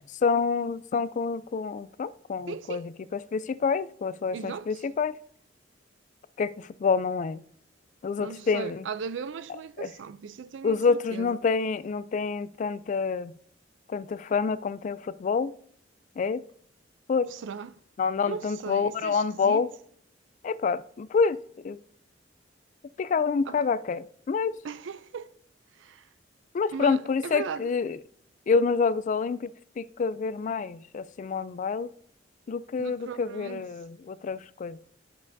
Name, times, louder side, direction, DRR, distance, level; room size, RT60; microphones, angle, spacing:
voice 1, 0.1-5.2 6.4-7.4 8.0-8.9 9.8-9.9 10.6-13.3 13.9-15.5 16.2-16.4 17.1-17.3 18.0-19.7 20.4-21.8 23.0-24.6 26.5-28.0 28.5-31.9 32.5-34.8, left 5 dB, 40° left, 0.3 m, -27 dB
voice 2, 2.5-2.8 4.3-4.8 8.2-11.4 17.3-17.8 18.3-19.6 23.5-23.6 24.6-25.3 25.7-26.1 26.7-27.7 32.8-33.6, right 6 dB, 75° right, 0.4 m, -38 dB
10.5 x 7.4 x 2.6 m
head